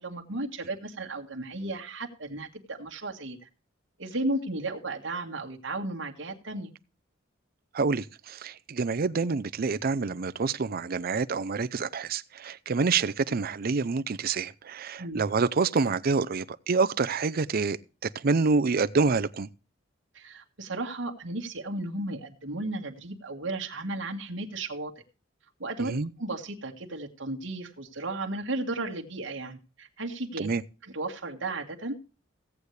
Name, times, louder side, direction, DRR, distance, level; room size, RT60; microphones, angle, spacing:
voice 1, 0.0-3.5 4.0-6.7 15.0-15.2 20.1-24.9 25.6-25.9 26.2-30.5 30.9-32.0, right 2 dB, 75° right, 1.8 m, -34 dB
voice 2, 7.7-17.8 18.0-19.5 25.8-26.1 30.4-30.6, right 4 dB, 50° right, 0.5 m, -27 dB
16.5 x 8.1 x 3.3 m
head